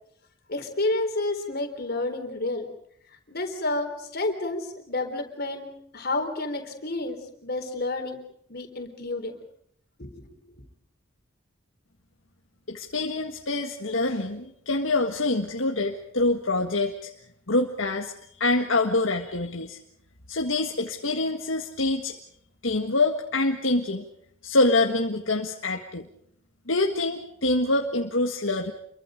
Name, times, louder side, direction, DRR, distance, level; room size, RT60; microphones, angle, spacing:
voice 1, 0.5-2.7 3.3-5.7 5.9-8.2 8.5-9.3 10.0-10.3, left 2 dB, 50° left, 5 dB, 3.9 m, -30 dB
voice 2, 12.7-17.1 17.5-18.1 18.4-19.8 20.3-22.1 22.6-24.1 24.4-26.1 26.7-28.7, left 2 dB, 70° left, 2 dB, 1.7 m, -25 dB
28.5 x 23.0 x 5.2 m, 0.69 s
head